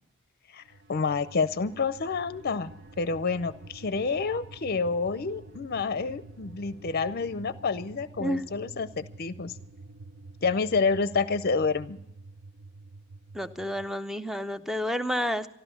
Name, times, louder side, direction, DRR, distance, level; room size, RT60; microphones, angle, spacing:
sound 1, 0.6-13.9, right 2 dB, 55° right, 0.6 m, -48 dB
voice 1, 0.9-2.7 3.0-9.5 10.4-12.0, left 4 dB, 50° left, 15 dB, 0.6 m, -28 dB
voice 2, 13.3-15.5, equal, ahead, 11 dB, 0.5 m, -30 dB
13.0 x 12.5 x 6.9 m, 0.77 s
head